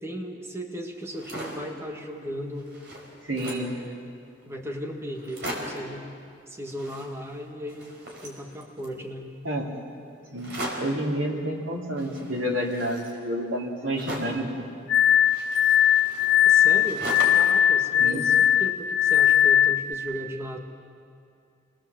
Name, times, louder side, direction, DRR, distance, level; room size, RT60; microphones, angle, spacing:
voice 1, 0.0-2.7 3.3-4.1 4.4-6.0 6.5-7.9 8.2-9.3 16.4-17.1 17.3-20.6, equal, 15° right, 2 dB, 1.6 m, -36 dB
sound 1, 1.0-1.7 2.2-2.3 2.5-3.8 4.4-4.5 4.7-4.8 5.1-5.9 6.6-7.4 7.7-9.0 10.4-11.0 12.0-14.5 15.2-17.6 17.9-18.8, equal, 60° right, 4.8 m, -38 dB
voice 2, 3.2-3.7 9.4-9.7 10.3-10.5 10.8-14.7 18.0-18.2, equal, 85° right, -1 dB, 3.5 m, -29 dB
Glass, 14.9-19.9, left 10 dB, 80° left, 0.6 m, -20 dB
28.0 x 20.5 x 7.5 m, 2.4 s
head